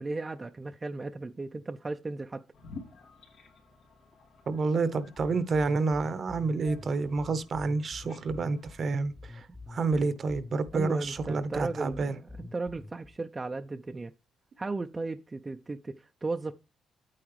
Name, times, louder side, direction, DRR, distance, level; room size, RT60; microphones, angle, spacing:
voice 1, 0.0-2.4 10.7-14.1 14.6-16.5, right 3 dB, 25° right, 0.5 m, -35 dB
sound 1, 2.5-8.9, left 4 dB, 90° left, 2.5 m, -52 dB
voice 2, 4.5-12.2, right 3 dB, 50° right, 0.9 m, -29 dB
sound 2, 5.2-13.2, left 2 dB, 10° left, 0.8 m, -46 dB
8.7 x 8.5 x 3.1 m
cardioid pair, 90°, 0 cm